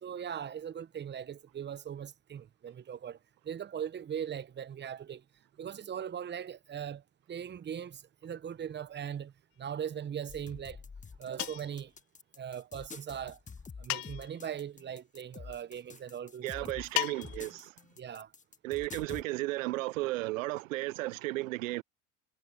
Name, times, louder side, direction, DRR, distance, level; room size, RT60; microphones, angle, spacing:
voice 1, 0.0-3.2 3.4-5.2 5.6-10.8 11.2-11.9 12.4-13.4 13.8-16.8 18.0-18.3, right 8 dB, 25° right, 1.1 m, -40 dB
sound 1, 10.3-19.2, left 5 dB, 20° left, 1.7 m, -47 dB
sound 2, 11.4-11.8 13.9-14.4 16.9-17.5, left 27 dB, 60° left, 0.9 m, -35 dB
voice 2, 16.4-17.7 18.6-21.8, right 20 dB, 75° right, 0.7 m, -34 dB
hypercardioid pair, 80°, 40 cm